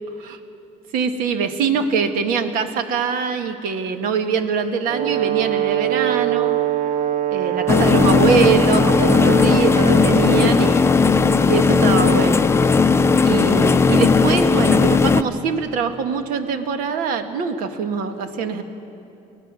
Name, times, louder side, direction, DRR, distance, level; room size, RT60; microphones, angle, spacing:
voice 1, 0.9-6.6 7.3-11.0 11.5-12.5 13.2-18.6, right 6 dB, 85° right, 7 dB, 1.6 m, -23 dB
Brass instrument, 4.9-10.9, right 12 dB, 65° right, 0.7 m, -23 dB
sound 1, 7.7-15.2, left 4 dB, 20° left, 0.5 m, -16 dB
24.5 x 17.0 x 6.2 m, 2.8 s
cardioid pair, 130°, 14 cm